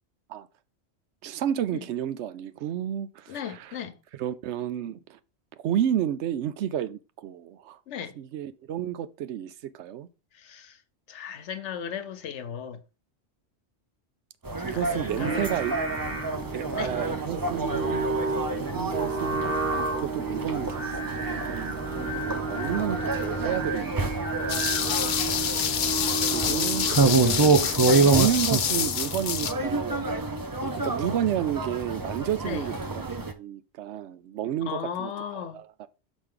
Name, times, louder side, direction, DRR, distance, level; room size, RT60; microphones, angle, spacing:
voice 1, 1.2-3.8 4.1-5.2 5.6-7.8 8.2-10.1 14.6-15.9 16.5-19.5 20.0-20.9 21.2-24.1 26.2-30.1 30.6-35.7, right 10 dB, 80° right, 0.9 m, -31 dB
voice 2, 3.3-4.0 7.9-8.1 10.3-10.8 11.1-12.8 14.6-15.5 16.7-16.9 26.4-26.7 27.8-28.1 32.4-32.7 34.7-35.6, left 8 dB, 90° left, 1.1 m, -36 dB
sound 1, 14.5-33.3, right 3 dB, 25° right, 0.6 m, -28 dB
Singing, 15.1-27.3, right 3 dB, 60° right, 1.5 m, -32 dB
sound 2, 24.5-29.5, left 8 dB, 70° left, 0.9 m, -27 dB
6.3 x 5.0 x 3.7 m
omnidirectional pair, 1.2 m